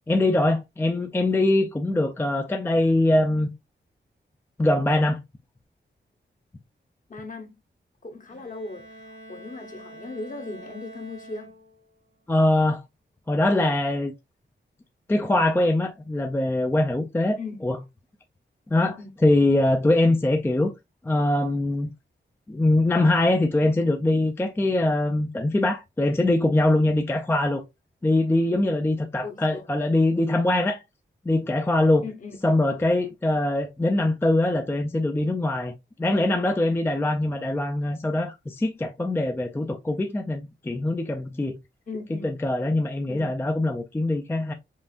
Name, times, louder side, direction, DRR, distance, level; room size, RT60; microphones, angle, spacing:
voice 1, 0.1-3.5 4.6-5.2 12.3-12.8 13.3-14.1 15.1-17.4 17.6-17.8 18.7-20.7 21.0-21.9 22.5-27.6 28.0-30.8 31.3-32.0 32.4-35.7 36.0-41.6 42.2-44.5, left 1 dB, 10° left, 0.3 m, -22 dB
voice 2, 7.1-7.5 8.0-11.5 17.4-17.7 19.0-19.1 29.2-29.9 32.0-32.4 41.9-42.3 43.1-43.4, left 3 dB, 45° left, 0.9 m, -38 dB
Bowed string instrument, 8.3-12.0, right 1 dB, 70° right, 1.6 m, -46 dB
5.5 x 2.5 x 2.4 m
wide cardioid pair, 155°, 20 cm